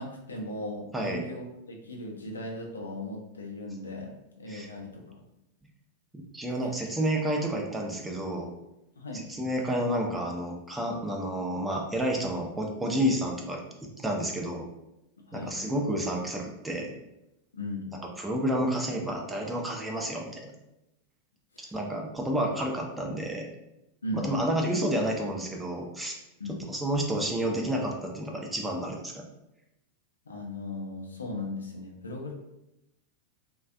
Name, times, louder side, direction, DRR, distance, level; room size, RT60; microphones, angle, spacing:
voice 1, 0.0-5.2 9.0-9.3 15.2-15.5 17.5-17.9 21.5-21.7 22.4-22.6 24.0-24.3 26.4-26.6 30.3-32.3, left 1 dB, 75° left, 0 dB, 0.4 m, -37 dB
voice 2, 0.9-1.2 4.5-4.7 6.1-8.5 9.1-13.6 14.0-14.7 15.3-16.9 18.2-20.5 21.6-23.5 24.1-26.1 26.5-29.2, right 1 dB, 5° right, 0 dB, 0.4 m, -30 dB
2.4 x 2.2 x 2.4 m, 0.87 s
figure-of-eight pair, 90°, 0 cm